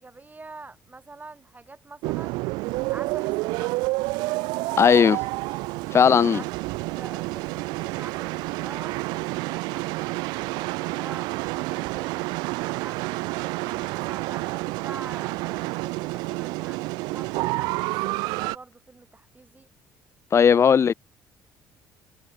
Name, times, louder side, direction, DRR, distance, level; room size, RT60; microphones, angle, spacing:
voice 1, 0.0-2.4 2.9-3.7 5.9-6.5 6.9-9.0 9.4-13.0 13.6-19.7 20.7-20.8, right 3 dB, 25° right, 7.4 m, -45 dB
sound 1, 2.0-18.6, right 24 dB, 80° right, 1.0 m, -29 dB
voice 2, 4.8-5.2 5.9-6.4 20.3-20.9, left 7 dB, 40° left, 0.5 m, -17 dB
supercardioid pair, 65°, 7 cm